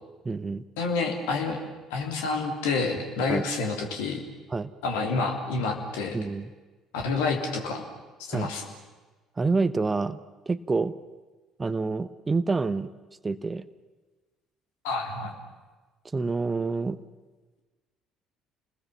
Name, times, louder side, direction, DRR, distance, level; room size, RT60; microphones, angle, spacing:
voice 1, 0.2-0.6 3.3-3.5 4.5-4.7 6.1-6.5 8.3-8.5 9.4-10.2 10.5-10.9 11.6-12.9 13.2-13.6 16.1-17.0, right 3 dB, 25° right, 15 dB, 0.9 m, -27 dB
voice 2, 0.8-1.6 1.9-4.2 4.8-6.2 6.9-7.8 8.2-8.7 14.8-15.4, left 4 dB, 70° left, 3 dB, 3.4 m, -28 dB
30.0 x 20.5 x 7.2 m, 1.3 s
figure-of-eight pair, 55°, 0 cm